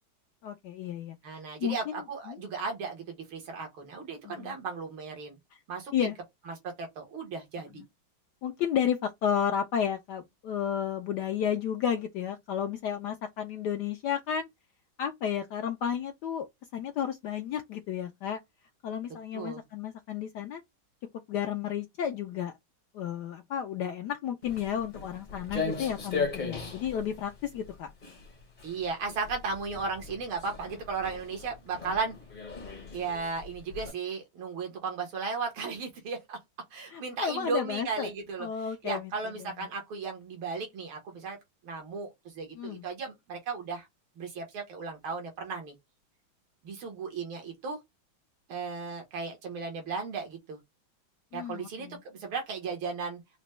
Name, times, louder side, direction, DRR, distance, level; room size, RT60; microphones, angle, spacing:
voice 1, 0.4-2.0 2.3-2.4 4.2-4.6 5.9-6.2 8.4-14.5 15.0-16.5 16.7-18.4 18.8-20.6 21.3-22.5 22.9-27.9 36.9-38.1 38.4-39.1 42.6-42.8 51.3-52.0, left 8 dB, 75° left, 1.0 m, -32 dB
voice 2, 1.2-5.4 5.7-6.1 6.5-7.8 19.3-19.6 28.6-32.2 32.9-36.4 36.7-41.4 41.6-43.9 44.2-45.8 46.6-47.8 48.5-50.6 51.3-53.2, right 4 dB, 80° right, 2.2 m, -35 dB
Walk footsteps, 24.4-33.9, left 4 dB, 35° left, 0.7 m, -38 dB
4.9 x 2.2 x 3.1 m
omnidirectional pair, 2.2 m